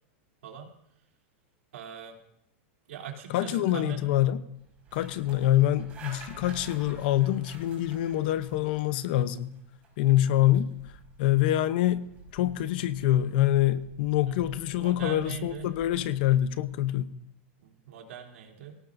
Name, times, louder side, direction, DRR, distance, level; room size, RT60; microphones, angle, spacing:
voice 1, 0.4-0.7 1.7-2.2 2.9-4.0 14.3-14.4 14.7-15.7 17.6-18.8, right 8 dB, 85° right, 3.3 m, -41 dB
voice 2, 3.3-4.4 4.9-9.5 10.0-10.7 11.2-12.1 12.3-17.1, left 13 dB, 45° left, 0.8 m, -25 dB
sound 1, 4.6-16.8, right 4 dB, 20° right, 5.3 m, -51 dB
23.5 x 17.5 x 2.7 m
supercardioid pair, 175°, 7 cm